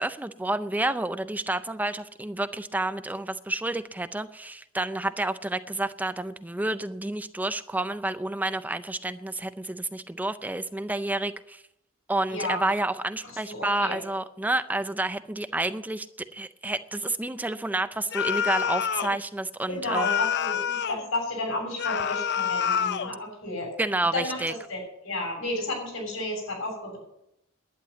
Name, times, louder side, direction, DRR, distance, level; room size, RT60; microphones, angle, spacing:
voice 1, 0.0-11.6 12.1-16.1 16.3-20.1 23.8-24.5, right 2 dB, 10° right, 11 dB, 0.4 m, -29 dB
voice 2, 12.3-12.6 13.2-14.0 19.7-23.7 24.1-27.0, left 2 dB, 85° left, 0 dB, 7.3 m, -32 dB
sound 1, 18.1-19.2 19.9-21.1 21.8-23.1, left 8 dB, 55° left, 0.5 m, -27 dB
11.5 x 9.8 x 8.0 m, 0.82 s
head